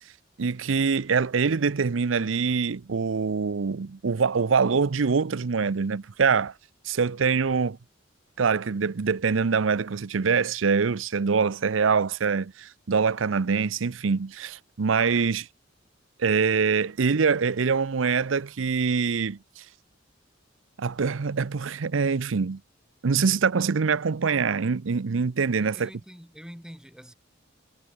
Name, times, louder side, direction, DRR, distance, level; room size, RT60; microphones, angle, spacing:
voice 1, 0.4-6.5 6.9-7.8 8.4-15.5 16.2-19.6 20.8-22.6 23.0-25.9, right 5 dB, 80° right, 0.6 m, -24 dB
voice 2, 25.6-27.1, equal, 5° right, 7.4 m, -45 dB
head